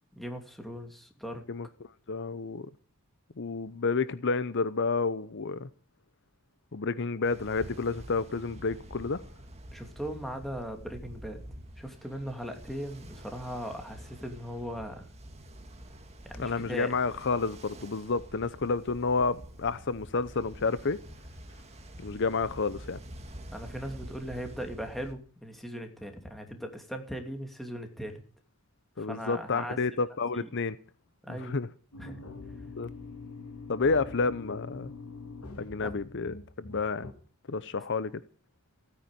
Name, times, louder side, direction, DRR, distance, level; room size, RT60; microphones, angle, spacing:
voice 1, 0.1-1.4 9.7-11.4 11.8-15.1 16.2-16.9 23.5-28.2 29.0-30.0 30.3-30.5 31.2-31.6 32.0-32.2 35.8-35.9, equal, ahead, 2.7 m, -39 dB
voice 2, 2.1-2.7 3.4-5.7 6.7-9.2 16.4-21.0 22.0-23.0 29.0-30.8 31.3-31.7 32.8-32.9 33.7-34.9 35.6-37.1 37.5-38.1, left 4 dB, 55° left, 0.7 m, -30 dB
Ocean, 7.2-25.1, right 1 dB, 30° right, 2.2 m, -47 dB
sound 1, 31.9-37.1, left 3 dB, 80° left, 3.4 m, -44 dB
16.5 x 9.7 x 9.0 m
head